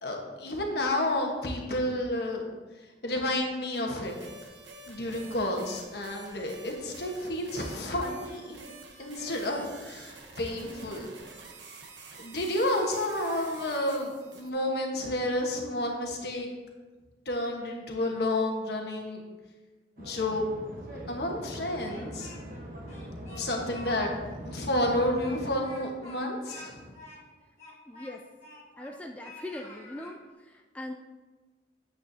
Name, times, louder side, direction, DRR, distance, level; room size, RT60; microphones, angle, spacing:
voice 1, 0.0-2.5 3.0-4.1 4.9-8.6 9.0-11.1 12.2-16.5 17.2-19.2 20.0-20.4 21.1-22.3 23.3-24.1 24.5-26.9, left 1 dB, 60° left, 1 dB, 1.3 m, -30 dB
sound 1, 4.0-14.5, right 3 dB, 90° right, 1.1 m, -48 dB
sound 2, 20.0-25.3, equal, 50° right, 1.1 m, -42 dB
Speech, 21.8-22.6 22.9-23.9 24.2-24.3 24.8-28.9 29.2-30.1, left 2 dB, 40° left, 1.9 m, -49 dB
voice 2, 27.9-28.2 28.8-30.9, left 1 dB, 10° left, 1 dB, 0.3 m, -41 dB
9.1 x 7.7 x 2.8 m, 1.3 s
head